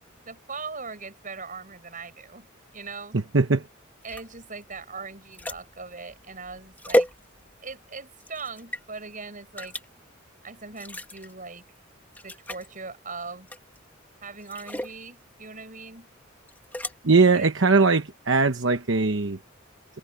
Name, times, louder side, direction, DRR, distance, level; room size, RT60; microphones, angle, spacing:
voice 1, 0.2-2.5 2.7-3.1 4.0-7.1 7.6-9.8 10.4-11.6 12.2-13.5 14.2-16.1 17.3-17.5, right 4 dB, 40° right, 6.7 m, -40 dB
voice 2, 3.1-3.6 17.0-19.4, right 4 dB, 65° right, 1.0 m, -20 dB
sound 1, 4.0-7.8 8.2-8.8 9.6-9.9 10.7-11.3 11.8-11.9 12.1-12.7 13.5-13.9 14.4-15.0 16.5-16.9, left 1 dB, 10° left, 1.8 m, -31 dB
head